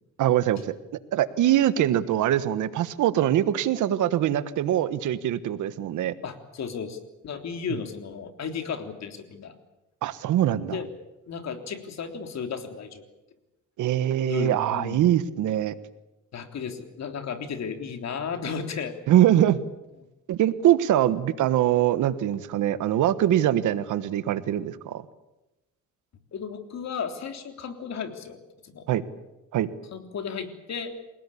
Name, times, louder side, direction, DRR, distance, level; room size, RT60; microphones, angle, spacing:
voice 1, 0.2-0.7 1.1-6.1 10.0-10.8 13.8-15.7 19.1-19.6 20.3-25.0 28.9-29.0 29.5-29.7, right 12 dB, 80° right, 14 dB, 1.4 m, -23 dB
voice 2, 6.2-7.0 7.2-9.6 10.7-10.9 11.3-13.0 14.2-15.1 16.3-19.0 26.3-28.4 28.6-28.9 29.9-30.9, left 6 dB, 60° left, 6 dB, 3.5 m, -34 dB
28.5 x 18.0 x 8.6 m, 0.98 s
cardioid pair, 90°, 30 cm